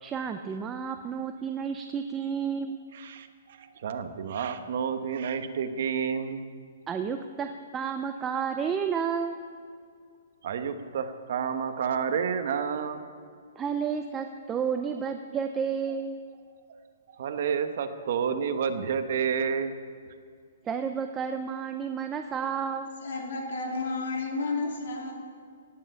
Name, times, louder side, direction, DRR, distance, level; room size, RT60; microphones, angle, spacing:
voice 1, 0.0-2.8 6.9-9.4 13.6-16.2 20.6-22.9, right 6 dB, 10° right, 6 dB, 0.4 m, -31 dB
voice 2, 2.9-6.4 10.4-13.0 17.2-19.7, right 7 dB, 45° right, 8 dB, 1.1 m, -30 dB
voice 3, 23.0-25.1, left 3 dB, 65° left, 1 dB, 3.1 m, -31 dB
17.5 x 7.9 x 8.9 m, 2.2 s
hypercardioid pair, 175°, 0 cm